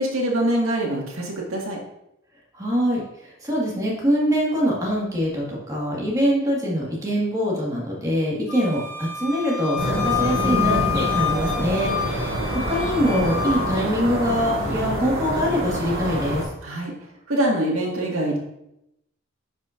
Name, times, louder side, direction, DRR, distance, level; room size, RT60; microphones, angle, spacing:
voice 1, 0.0-1.8 16.6-16.9 17.3-18.4, right 1 dB, 80° right, -2 dB, 1.8 m, -24 dB
voice 2, 2.5-12.4 12.7-16.5, equal, 15° right, -4 dB, 1.8 m, -24 dB
Wind instrument woodwind instrument, 8.5-13.7, left 9 dB, 90° left, 1.7 m, -28 dB
sound 1, 9.8-16.4, equal, 50° right, 2.1 m, -26 dB
10.0 x 5.3 x 2.6 m, 0.83 s
head